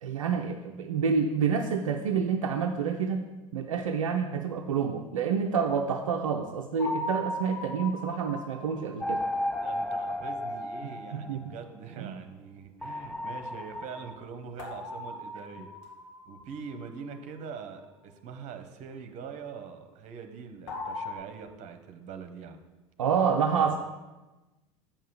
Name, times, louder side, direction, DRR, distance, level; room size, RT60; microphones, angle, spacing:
voice 1, 0.0-3.2 3.5-9.2 11.1-11.4 12.0-12.2 23.0-23.8, right 6 dB, 75° right, 4 dB, 0.6 m, -28 dB
sound 1, 6.8-9.8 14.6-16.8 20.7-21.1, left 1 dB, 65° left, 1.9 m, -38 dB
sound 2, 9.0-11.6 12.8-14.1, left 1 dB, 5° left, 0.6 m, -33 dB
voice 2, 9.6-15.7 16.3-22.6 23.6-23.7, right 6 dB, 45° right, 8 dB, 1.1 m, -43 dB
7.2 x 5.5 x 7.1 m, 1.1 s
figure-of-eight pair, 75°, 17 cm